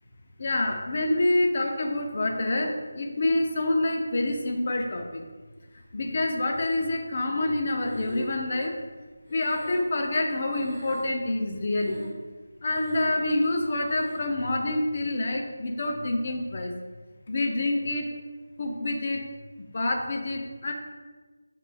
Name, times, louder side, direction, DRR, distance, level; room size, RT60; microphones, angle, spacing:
voice 1, 0.4-5.2 5.9-8.7 9.3-12.0 12.6-16.7 17.3-18.1 18.6-19.3 19.6-20.7, left 2 dB, 40° left, 2 dB, 0.5 m, -27 dB
Breathing, 6.5-7.2 7.8-10.3 10.5-11.3 11.7-12.3 12.6-13.3 13.8-14.3, equal, 10° left, 1.4 m, -41 dB
5.9 x 3.0 x 2.2 m, 1.3 s
figure-of-eight pair, 170°, 0 cm